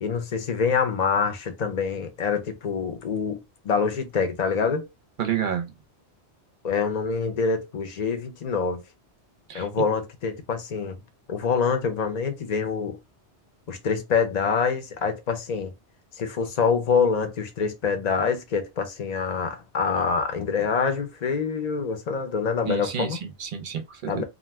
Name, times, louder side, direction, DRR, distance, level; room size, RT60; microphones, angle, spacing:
voice 1, 0.0-4.8 6.6-8.8 9.5-11.0 11.3-13.0 13.7-15.7 16.2-23.2 24.1-24.2, left 5 dB, 45° left, 0.7 m, -26 dB
voice 2, 5.2-5.7 9.5-9.7 22.7-24.2, right 8 dB, 55° right, 0.7 m, -30 dB
2.5 x 2.3 x 3.3 m
omnidirectional pair, 1.1 m